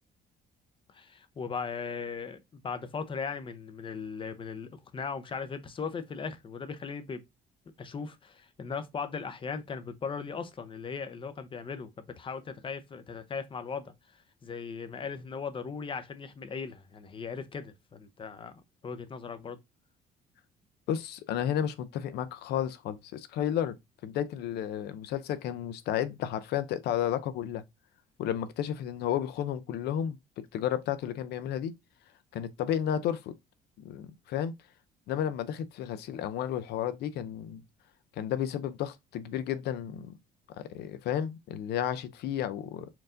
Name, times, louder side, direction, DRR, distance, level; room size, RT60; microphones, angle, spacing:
voice 1, 0.9-7.2 7.8-13.9 14.4-18.5 18.8-19.6, left 5 dB, 30° left, 0.7 m, -38 dB
voice 2, 20.9-23.8 24.0-27.6 28.2-31.7 32.3-33.4 33.8-34.5 35.1-37.6 38.2-40.2 40.6-42.9, left 10 dB, 75° left, 0.6 m, -32 dB
4.5 x 2.6 x 3.7 m
cardioid pair, 110°, 17 cm